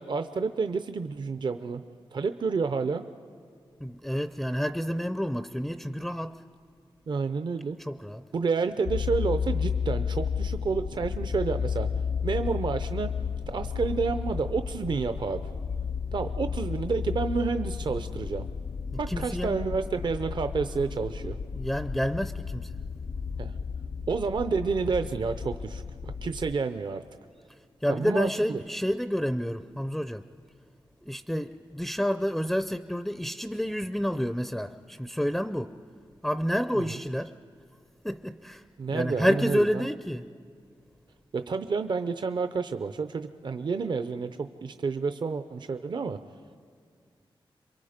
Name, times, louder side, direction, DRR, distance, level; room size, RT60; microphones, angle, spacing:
voice 1, 0.0-1.8 2.1-3.0 7.1-7.8 8.3-11.9 12.2-13.1 13.5-15.4 16.1-18.5 19.0-21.4 23.4-23.5 24.1-27.0 27.9-28.6 36.7-37.0 38.8-39.9 41.3-46.2, right 4 dB, 55° right, 10 dB, 0.6 m, -30 dB
voice 2, 3.8-6.4 7.8-8.2 18.9-19.6 21.5-22.7 27.8-30.3 31.0-35.8 36.2-37.4 38.0-38.6 38.9-40.3, equal, ahead, 11 dB, 0.5 m, -29 dB
sound 1, 8.9-26.6, left 6 dB, 65° left, 0.5 m, -33 dB
27.5 x 23.0 x 5.1 m, 2.2 s
wide cardioid pair, 95°, 9 cm